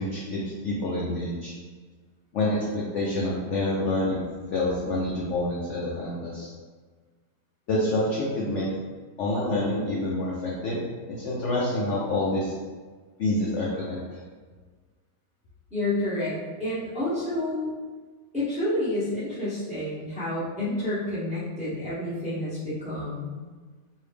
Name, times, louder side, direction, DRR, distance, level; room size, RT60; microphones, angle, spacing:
voice 1, 0.0-1.5 2.3-4.2 4.5-6.5 7.7-8.7 9.2-12.5 13.2-14.2, left 1 dB, 70° left, -5 dB, 0.7 m, -27 dB
voice 2, 15.7-17.7 18.3-23.3, left 1 dB, 5° right, -10 dB, 0.7 m, -29 dB
3.1 x 2.7 x 3.3 m, 1.4 s
omnidirectional pair, 1.9 m